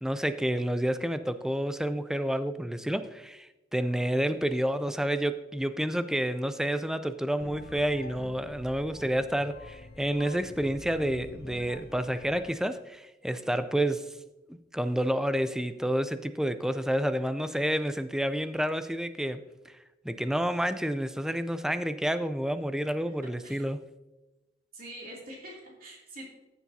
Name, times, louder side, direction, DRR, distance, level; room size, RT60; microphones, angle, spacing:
voice 1, 0.0-14.1 14.5-19.7 20.0-23.8, right 1 dB, 5° right, 11 dB, 0.4 m, -29 dB
sound 1, 7.4-12.5, left 2 dB, 55° left, 0.7 m, -47 dB
voice 2, 23.2-23.6 24.7-26.3, right 1 dB, 50° right, -3 dB, 2.8 m, -45 dB
14.5 x 7.1 x 2.7 m, 1.1 s
head